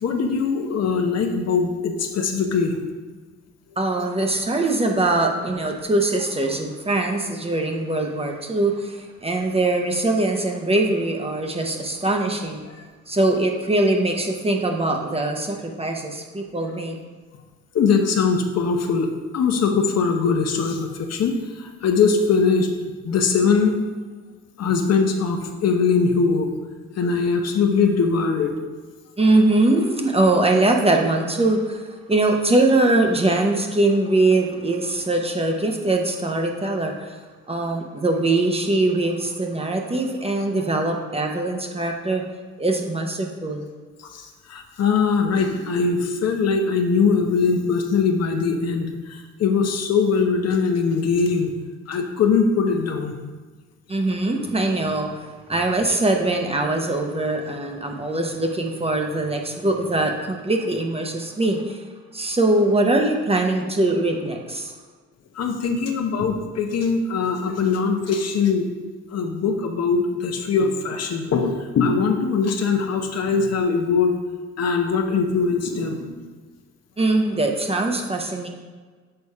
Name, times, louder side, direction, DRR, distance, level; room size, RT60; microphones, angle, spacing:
voice 1, 0.0-2.8 17.7-19.1 19.3-22.7 23.0-23.7 24.6-26.5 27.0-28.5 44.0-51.5 51.9-53.1 65.3-68.7 69.1-74.1 74.6-76.2, left 5 dB, 55° left, 4 dB, 0.9 m, -21 dB
voice 2, 3.8-12.6 13.1-17.0 29.2-37.2 37.5-42.2 42.6-43.7 53.9-61.8 62.1-64.7 77.0-78.5, right 2 dB, 20° right, 3 dB, 0.8 m, -22 dB
6.7 x 4.2 x 4.7 m, 1.4 s
cardioid pair, 90°, 30 cm